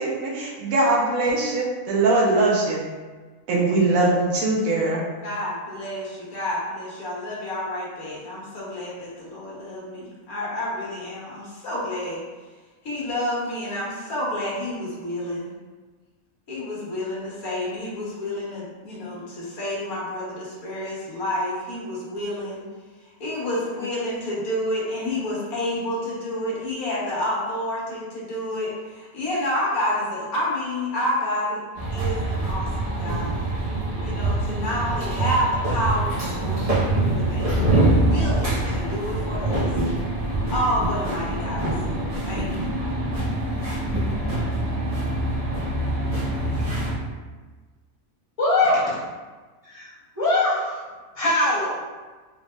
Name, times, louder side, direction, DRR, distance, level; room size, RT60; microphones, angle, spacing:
voice 1, 0.0-2.8 3.5-5.0, right 2 dB, 70° right, -4 dB, 1.2 m, -21 dB
voice 2, 5.2-12.2 12.8-15.5 16.5-22.6 23.2-31.6 31.9-33.5 34.0-39.7 40.5-42.8, left 1 dB, 70° left, -6 dB, 1.5 m, -29 dB
sound 1, 31.8-46.9, right 2 dB, 25° right, 1.0 m, -24 dB
voice 3, 48.4-49.0 49.6-49.9 50.1-50.9 51.1-51.9, left 2 dB, 25° left, -10 dB, 1.4 m, -22 dB
3.8 x 3.6 x 2.4 m, 1.3 s
omnidirectional pair, 1.6 m